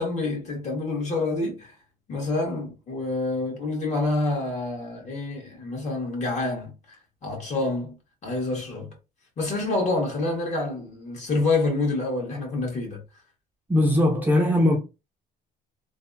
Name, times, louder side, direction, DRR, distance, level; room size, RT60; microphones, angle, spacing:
voice 1, 0.0-1.7 2.1-8.0 8.2-8.9 9.4-13.0, left 2 dB, 40° left, 1.7 m, -27 dB
voice 2, 13.7-14.8, left 1 dB, 10° right, 0.7 m, -20 dB
3.3 x 2.3 x 2.6 m
cardioid pair, 110°, 17 cm